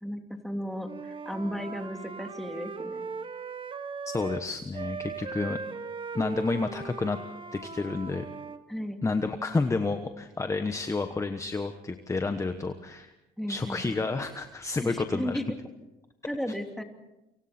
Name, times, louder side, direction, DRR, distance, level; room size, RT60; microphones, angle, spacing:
voice 1, 0.0-3.1 8.7-9.0 13.4-13.9 14.8-15.5 16.3-16.8, equal, ahead, 4 dB, 2.8 m, -34 dB
Wind instrument woodwind instrument, 0.8-4.5 4.7-8.6, right 5 dB, 30° right, 1.2 m, -39 dB
voice 2, 4.1-5.6 6.1-7.2 7.5-8.2 9.0-13.1 13.5-15.4, left 3 dB, 20° left, 8 dB, 1.2 m, -30 dB
28.5 x 25.5 x 4.4 m, 0.95 s
cardioid pair, 110°, 17 cm